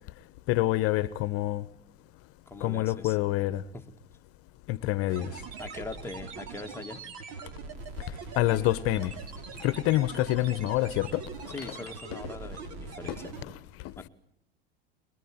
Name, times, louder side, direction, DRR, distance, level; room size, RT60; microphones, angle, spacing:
voice 1, 0.5-1.6 2.6-3.6 4.7-5.3 8.4-9.1 9.6-11.2 13.1-13.2 13.5-13.6, left 16 dB, 50° left, 1.1 m, -26 dB
voice 2, 2.5-3.2 3.7-3.9 5.6-7.1 11.5-13.3 14.0-14.1, left 3 dB, 10° left, 1.9 m, -42 dB
sound 1, 5.1-13.4, right 4 dB, 55° right, 5.3 m, -42 dB
23.0 x 22.0 x 8.9 m
hypercardioid pair, 95°, 30 cm